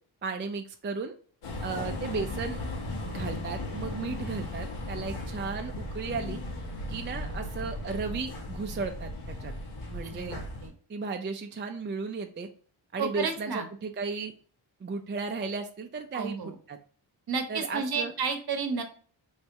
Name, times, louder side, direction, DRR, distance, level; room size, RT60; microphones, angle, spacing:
voice 1, 0.2-1.1 1.6-2.6 3.1-6.4 6.9-9.5 9.9-10.4 10.9-12.5 12.9-14.3 14.8-16.4 16.7-16.8 17.5-18.1, right 4 dB, 25° right, 5 dB, 0.3 m, -35 dB
sound 1, 1.4-10.7, left 1 dB, 90° left, 1.5 m, -36 dB
voice 2, 10.1-10.7 13.0-13.7 16.1-16.5 17.3-18.8, right 5 dB, 50° right, 6 dB, 0.8 m, -31 dB
3.4 x 3.2 x 2.8 m, 0.44 s
wide cardioid pair, 100°, 48 cm